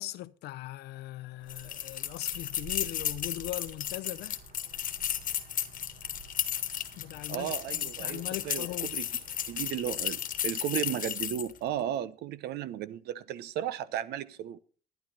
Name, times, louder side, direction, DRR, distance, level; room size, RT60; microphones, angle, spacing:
voice 1, 0.0-4.4 7.0-9.0, left 16 dB, 80° left, 0.6 m, -40 dB
sound 1, 1.4-10.6, right 7 dB, 60° right, 1.7 m, -53 dB
sound 2, 1.5-11.6, left 10 dB, 55° left, 1.3 m, -34 dB
voice 2, 7.3-9.0 9.5-14.6, right 11 dB, 75° right, 0.8 m, -35 dB
12.0 x 10.5 x 4.2 m
cardioid pair, 110°, 17 cm